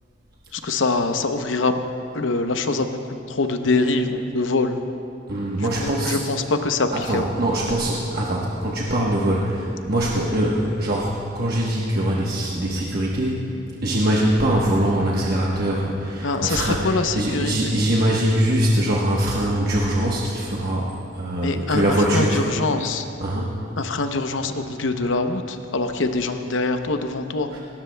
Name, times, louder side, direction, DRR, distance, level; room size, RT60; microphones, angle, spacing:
voice 1, 0.5-1.7 2.1-4.8 5.6-7.2 16.2-17.8 21.4-21.8 22.1-23.1 23.8-27.5, left 3 dB, 75° left, 7 dB, 0.8 m, -24 dB
voice 2, 5.3-6.2 6.9-13.6 13.8-22.4 23.2-23.6 27.5-27.6, right 1 dB, 50° right, -4 dB, 1.1 m, -22 dB
19.0 x 17.5 x 2.2 m, 2.7 s
head